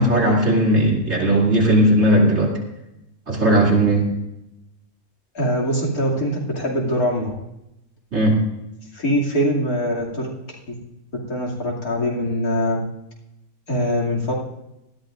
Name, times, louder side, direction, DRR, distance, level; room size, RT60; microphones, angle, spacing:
voice 1, 0.0-2.5 3.3-4.1 8.1-8.4, right 1 dB, 50° right, -2 dB, 3.1 m, -17 dB
voice 2, 5.3-7.3 8.9-10.3 10.7-10.8 11.3-12.9 13.7-14.3, equal, 85° left, -3 dB, 3.1 m, -22 dB
19.5 x 13.0 x 2.6 m, 0.89 s
omnidirectional pair, 1.5 m